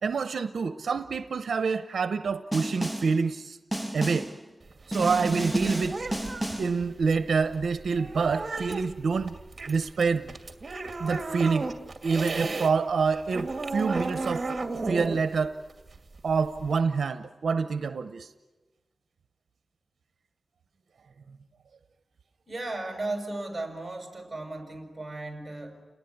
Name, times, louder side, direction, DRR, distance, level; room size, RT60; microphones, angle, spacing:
voice 1, 0.0-3.6 3.9-4.3 4.9-6.0 6.6-9.4 9.7-10.4 11.0-11.7 12.0-14.6 14.9-15.6 16.2-18.3, right 5 dB, 75° right, 10 dB, 0.8 m, -27 dB
Snare drum, 2.5-3.2 3.7-4.4 4.9-6.8, right 1 dB, ahead, 0.9 m, -31 dB
sound 1, 4.6-12.7 13.0-16.8, right 3 dB, 35° right, 2.3 m, -35 dB
voice 2, 22.5-25.9, right 2 dB, 15° right, 4 dB, 6.4 m, -35 dB
30.0 x 20.0 x 9.7 m, 1.2 s
wide cardioid pair, 140°, 0 cm